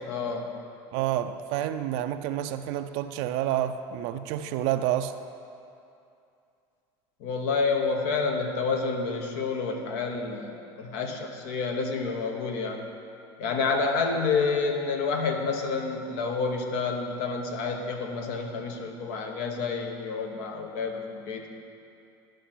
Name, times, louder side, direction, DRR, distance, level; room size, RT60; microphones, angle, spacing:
voice 1, 0.1-0.5 7.2-12.8 13.4-21.5, left 4 dB, 75° left, 3 dB, 1.1 m, -29 dB
voice 2, 0.9-5.1, right 12 dB, 75° right, 9 dB, 0.4 m, -29 dB
11.5 x 5.2 x 5.9 m, 2.6 s
supercardioid pair, 125°, 11 cm